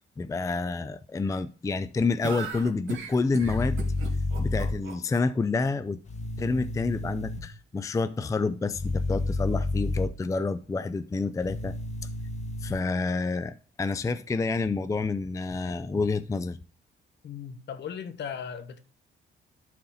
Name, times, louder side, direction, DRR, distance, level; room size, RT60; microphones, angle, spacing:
voice 1, 0.2-3.8 4.4-6.0 6.4-11.7 12.6-16.6, left 3 dB, 15° left, 0.4 m, -28 dB
sound 1, 2.2-5.2, right 6 dB, 75° right, 2.3 m, -37 dB
sound 2, 3.4-4.7 6.1-7.4 8.7-10.1 11.4-12.7, left 2 dB, 35° left, 1.7 m, -30 dB
voice 2, 17.2-18.8, left 7 dB, 60° left, 1.2 m, -37 dB
11.5 x 4.2 x 4.1 m
cardioid pair, 90°, 20 cm